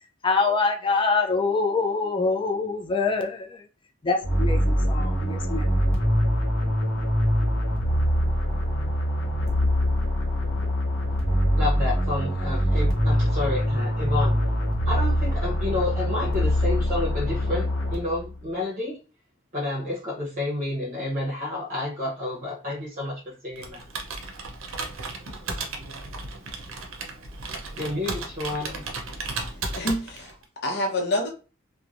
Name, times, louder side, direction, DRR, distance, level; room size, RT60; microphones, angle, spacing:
voice 1, 0.2-3.6 4.0-5.7, left 4 dB, 25° left, 0.4 m, -25 dB
sound 1, 4.2-18.3, equal, 85° left, 0.9 m, -24 dB
voice 2, 11.6-14.4 14.9-19.0 19.5-23.8 27.8-28.8, left 2 dB, 40° right, 0.7 m, -30 dB
Computer keyboard, 23.6-30.4, right 3 dB, 75° right, 0.6 m, -35 dB
voice 3, 29.7-31.3, left 1 dB, 55° left, 0.8 m, -27 dB
3.0 x 2.1 x 2.5 m
head